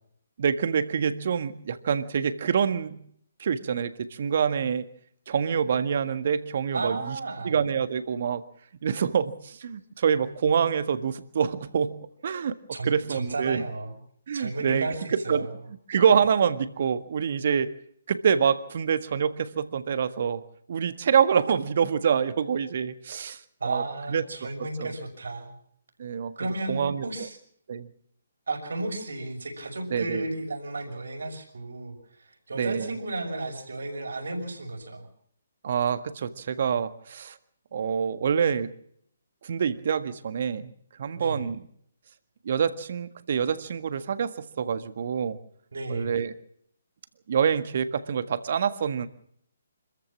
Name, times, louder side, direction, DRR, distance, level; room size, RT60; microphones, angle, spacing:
voice 1, 0.4-3.1 3.4-4.8 5.3-7.1 7.4-8.4 8.8-12.6 12.8-13.6 14.3-15.5 15.9-17.7 18.1-20.4 20.7-23.8 24.1-24.2 24.8-24.9 26.0-26.3 26.7-27.1 27.7-27.9 29.9-30.2 32.5-32.9 35.6-37.4 37.7-38.8 39.4-40.7 41.0-41.7 42.4-45.4 45.9-46.3 47.3-49.1, right 7 dB, 50° right, 12 dB, 1.6 m, -26 dB
voice 2, 6.7-7.6 12.7-14.0 14.3-15.5 23.6-25.6 26.4-27.4 28.5-32.0 32.5-35.1 41.2-41.5 45.7-46.2, right 2 dB, 70° right, 3 dB, 6.1 m, -33 dB
26.0 x 14.5 x 7.4 m, 0.68 s
figure-of-eight pair, 135°, 0 cm